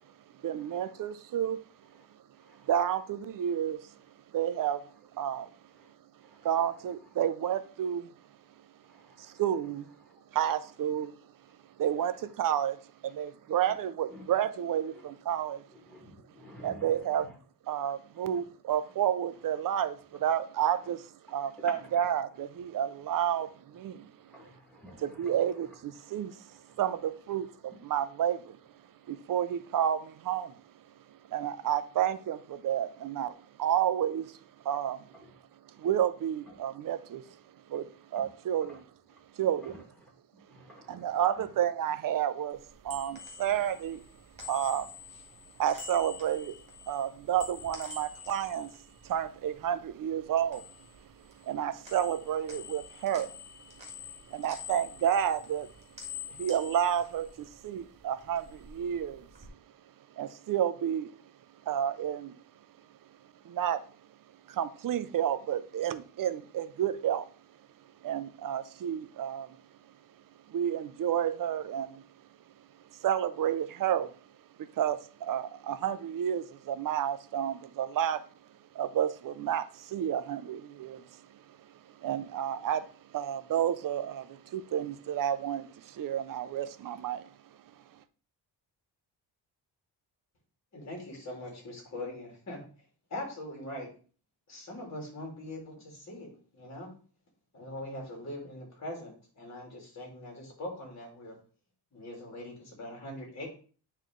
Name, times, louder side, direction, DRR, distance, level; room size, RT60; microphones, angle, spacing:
voice 1, 0.4-1.6 2.7-3.9 4.3-4.8 5.1-5.5 6.4-8.1 9.2-9.9 10.3-11.2 11.8-15.6 16.6-17.3 17.7-24.1 25.0-26.4 26.8-28.6 29.1-30.5 31.3-34.4 34.6-35.0 35.8-37.2 37.7-38.8 39.4-39.8 40.9-44.0 44.5-44.9 45.6-46.6 46.9-48.8 49.0-50.7 51.4-53.3 54.3-55.7 56.3-59.3 60.2-61.1 61.7-62.4 63.4-63.8 64.5-67.3 68.0-69.6 70.5-72.0 73.0-74.1 74.6-78.2 78.7-81.2 82.0-87.3, right 10 dB, 55° right, 0.6 m, -30 dB
voice 2, 8.9-9.4 13.7-13.8 14.1-14.3 14.9-15.0 15.9-17.3 18.2-18.3 21.8-22.1 24.3-25.4 26.5-26.8 35.1-35.3 38.2-38.3 38.6-38.8 39.6-39.8 40.5-41.2, left 1 dB, ahead, 2.1 m, -52 dB
sound 1, 42.6-49.9 50.2-51.6 51.8-57.8 58.2-59.5, left 5 dB, 15° right, 1.9 m, -47 dB
voice 3, 90.7-92.6 93.1-93.9 94.5-96.9 97.5-101.4 101.9-103.5, left 1 dB, 40° left, 2.9 m, -42 dB
9.2 x 3.3 x 3.8 m
cardioid pair, 130°, 40 cm